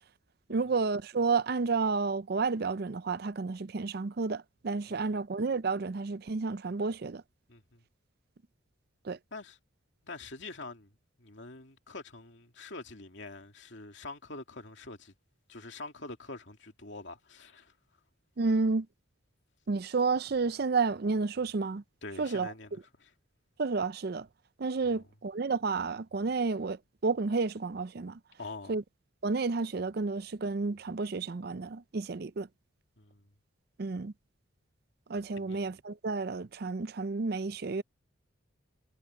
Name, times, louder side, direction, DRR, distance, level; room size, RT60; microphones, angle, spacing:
voice 1, 0.5-7.2 9.0-9.2 18.4-18.9 19.7-21.8 22.2-22.5 23.6-24.3 24.6-28.2 28.7-28.8 29.2-32.5 33.8-34.1 35.1-37.8, right 4 dB, 50° right, 0.5 m, -31 dB
voice 2, 7.5-7.8 9.3-9.6 10.0-10.9 11.2-15.1 15.5-17.7 22.0-22.7 23.0-23.1 24.8-25.0 28.4-28.7 33.0-33.3 35.4-35.6, left 3 dB, 60° left, 2.7 m, -45 dB
head